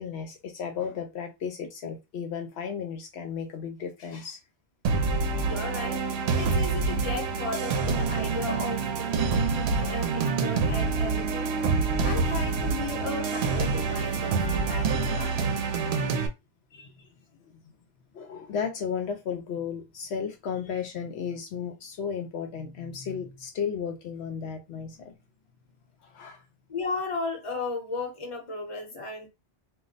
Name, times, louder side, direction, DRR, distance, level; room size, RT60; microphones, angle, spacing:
voice 1, 0.0-4.4 9.8-10.0 14.2-15.1 16.7-17.1 18.1-25.2 26.0-26.4, left 7 dB, 75° left, 0.8 m, -34 dB
sound 1, 4.8-16.3, right 4 dB, 75° right, 0.8 m, -26 dB
voice 2, 5.4-6.0 6.3-11.5 12.0-15.4 26.7-29.3, left 3 dB, 30° left, 0.9 m, -35 dB
2.3 x 2.1 x 3.8 m
omnidirectional pair, 1.1 m